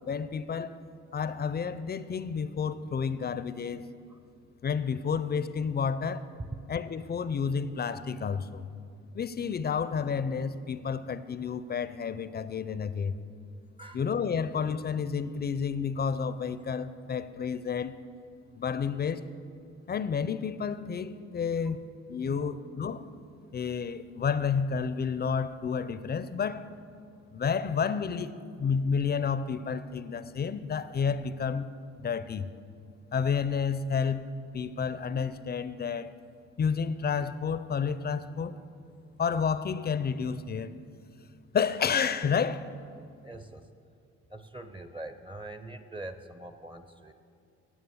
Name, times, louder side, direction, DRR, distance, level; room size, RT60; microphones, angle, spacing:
voice 1, 0.1-0.8 1.1-3.9 4.6-6.2 6.7-8.7 9.1-13.1 13.9-17.9 18.6-19.2 19.9-21.8 22.1-23.0 23.5-26.6 27.3-28.3 28.6-31.7 32.0-32.5 33.1-34.2 34.5-36.1 36.6-38.6 39.2-40.7 41.5-42.7, left 6 dB, 35° left, 0.5 m, -30 dB
voice 2, 43.2-43.7 44.3-47.1, right 1 dB, 15° right, 0.6 m, -43 dB
9.5 x 8.6 x 7.2 m
cardioid pair, 90°, 30 cm